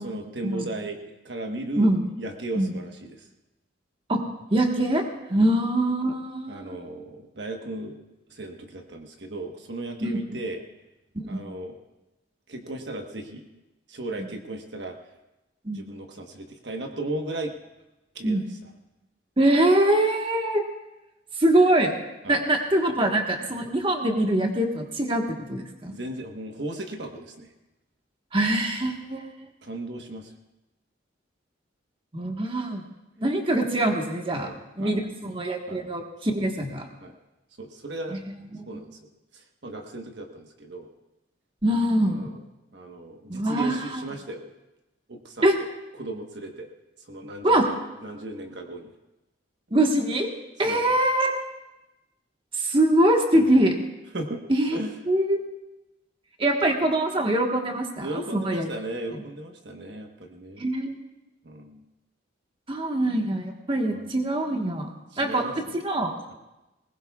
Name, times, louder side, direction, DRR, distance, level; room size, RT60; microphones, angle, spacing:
voice 1, 0.0-1.9 2.2-3.2 5.4-5.5 6.5-8.0 8.3-10.6 11.3-11.8 12.5-13.4 13.9-15.0 15.7-17.5 18.1-18.6 22.2-22.4 25.9-27.5 29.6-30.3 34.3-35.0 35.7-35.9 36.3-36.4 37.0-37.1 37.6-38.2 38.7-39.0 39.3-40.9 42.0-42.4 42.7-44.5 45.1-45.5 46.0-46.7 47.1-48.9 50.6-51.0 53.3-53.6 54.1-54.4 54.7-54.9 58.0-60.7 61.4-61.8 63.9-64.0 65.1-65.7, right 2 dB, 65° right, 3 dB, 1.2 m, -36 dB
voice 2, 4.5-6.8 10.0-10.2 11.1-11.4 14.2-14.3 15.6-15.9 18.2-18.4 19.4-20.6 21.4-21.9 22.3-25.9 28.3-29.2 32.1-32.8 33.2-34.5 34.8-36.9 38.1-38.8 41.6-42.3 43.3-44.0 45.4-45.6 47.4-47.7 49.7-50.3 50.6-51.4 52.5-53.7 54.5-55.4 56.4-58.7 59.1-59.2 60.6-61.0 62.7-64.9 65.2-66.1, right 1 dB, 30° right, 2 dB, 1.4 m, -23 dB
21.0 x 19.5 x 2.4 m, 0.99 s
head